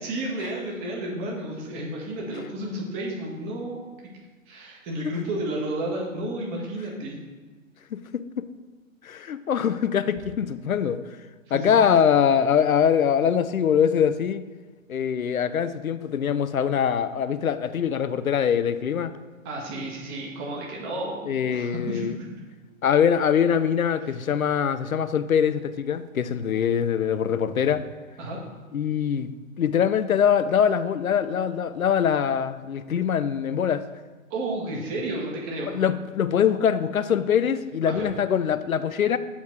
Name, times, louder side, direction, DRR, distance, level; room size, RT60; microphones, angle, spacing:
voice 1, 0.0-3.8 4.5-7.2 11.5-11.9 19.4-22.3 28.2-28.4 34.3-35.7 37.9-38.1, right 1 dB, 25° right, -2 dB, 1.7 m, -32 dB
voice 2, 7.9-8.5 9.0-11.0 11.5-14.4 14.9-19.1 21.3-22.2 22.8-27.9 28.7-29.3 29.6-33.8 35.7-39.2, left 8 dB, 85° left, 13 dB, 0.6 m, -23 dB
7.3 x 4.1 x 4.7 m, 1.4 s
figure-of-eight pair, 120°, 41 cm